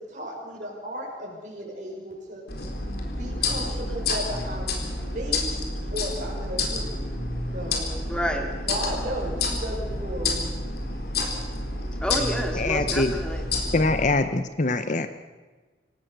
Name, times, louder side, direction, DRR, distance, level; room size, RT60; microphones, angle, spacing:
voice 1, 0.0-2.4 3.1-5.5 5.9-6.9 7.5-7.9 8.7-10.5, equal, 45° right, -3 dB, 6.7 m, -35 dB
sound 1, 2.5-14.1, left 2 dB, 60° left, 4.1 m, -29 dB
voice 2, 8.1-8.5 12.0-13.4, equal, 5° left, 2 dB, 3.0 m, -29 dB
voice 3, 12.5-13.1 13.7-15.1, left 2 dB, 45° left, 10 dB, 0.9 m, -23 dB
26.5 x 17.0 x 6.8 m, 1.3 s
head